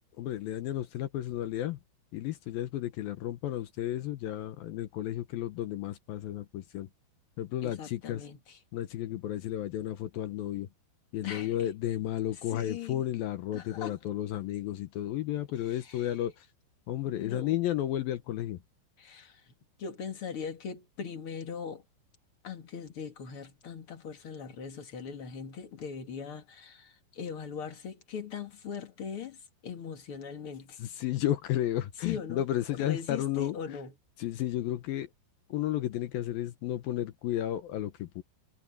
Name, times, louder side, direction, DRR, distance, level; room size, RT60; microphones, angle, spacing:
voice 1, 0.0-1.8 2.1-6.9 7.4-8.3 8.7-10.7 11.1-16.5 16.9-18.6 30.8-33.8 34.2-35.1 35.5-38.2, left 12 dB, 70° left, 2.3 m, -33 dB
voice 2, 7.6-8.6 11.2-11.5 12.5-13.0 13.5-13.9 15.8-16.1 17.1-17.6 19.0-19.4 19.8-21.8 22.4-30.8 32.0-32.4 32.7-33.9, left 7 dB, 45° left, 1.9 m, -40 dB
omnidirectional pair, 5.2 m